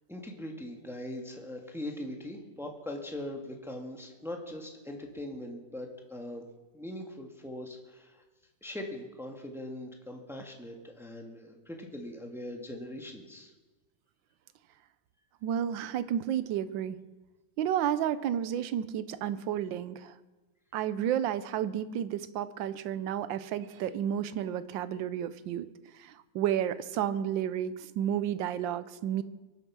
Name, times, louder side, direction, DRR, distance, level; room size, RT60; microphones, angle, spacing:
voice 1, 0.1-6.4 6.7-8.2 8.6-13.5, left 1 dB, ahead, 2 dB, 1.5 m, -41 dB
voice 2, 15.4-17.0 17.6-20.1 20.7-25.7 25.9-29.2, right 10 dB, 80° right, 14 dB, 1.4 m, -31 dB
23.0 x 8.0 x 6.2 m, 1.2 s
omnidirectional pair, 2.0 m